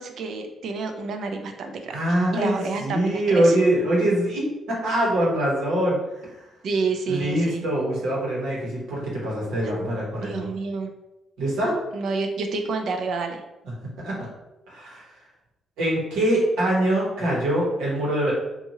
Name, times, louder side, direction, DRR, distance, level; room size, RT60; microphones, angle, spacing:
voice 1, 0.0-2.0 2.3-3.6 6.6-7.6 9.6-9.8 10.2-10.9 11.9-13.4, right 4 dB, 65° right, 5 dB, 0.4 m, -29 dB
voice 2, 1.9-6.3 7.1-10.5 11.4-11.8 13.6-14.3 14.7-15.0 15.8-18.3, right 1 dB, 90° right, -4 dB, 1.0 m, -24 dB
2.7 x 2.3 x 2.9 m, 0.98 s
cardioid pair, 90°, 0 cm